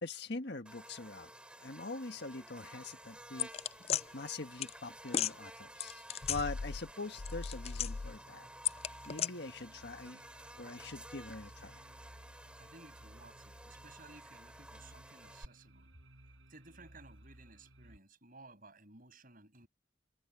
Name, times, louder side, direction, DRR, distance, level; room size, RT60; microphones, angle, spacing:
voice 1, 0.0-1.3 1.6-3.5 4.1-6.0 6.3-8.5 9.0-10.2 10.6-11.8, left 3 dB, 55° left, 1.6 m, -43 dB
Buzz, 0.7-15.5, right 1 dB, 5° right, 2.7 m, -53 dB
sound 1, 3.4-4.0 4.6-4.7 5.1-5.3 5.8-6.9 7.2-8.2 8.6-9.3, left 9 dB, 30° left, 0.3 m, -35 dB
sound 2, 7.0-18.0, right 1 dB, 75° right, 6.5 m, -59 dB
voice 2, 12.6-15.9 16.5-19.7, right 3 dB, 45° right, 7.3 m, -57 dB
head